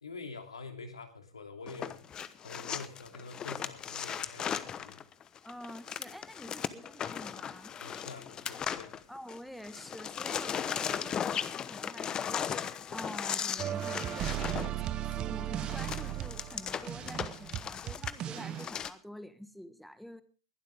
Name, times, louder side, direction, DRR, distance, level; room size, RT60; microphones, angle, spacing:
voice 1, 0.0-5.0 7.8-8.9, left 4 dB, 85° left, 5 dB, 2.8 m, -46 dB
sound 1, 1.7-9.4 9.6-18.9, left 8 dB, 25° left, 1.0 m, -37 dB
voice 2, 5.4-7.7 9.1-14.3 15.0-20.2, equal, ahead, 12 dB, 1.4 m, -47 dB
sound 2, 13.6-18.7, right 12 dB, 35° right, 0.8 m, -36 dB
21.0 x 11.5 x 3.6 m, 0.35 s
hypercardioid pair, 105°, 3 cm